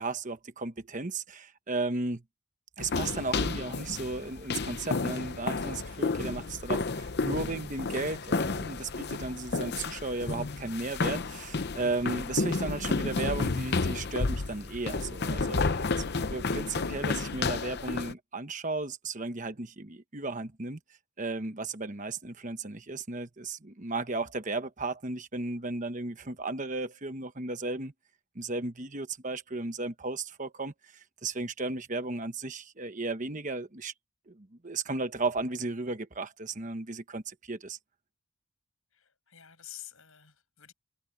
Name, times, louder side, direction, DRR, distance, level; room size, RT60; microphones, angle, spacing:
voice 1, 0.0-2.2 2.8-20.8 21.2-27.9 28.3-33.9 34.3-37.8, right 3 dB, 35° right, 1.1 m, -35 dB
sound 1, 2.8-18.1, left 3 dB, 45° left, 0.7 m, -31 dB
voice 2, 38.9-40.7, left 13 dB, 65° left, 7.8 m, -49 dB
head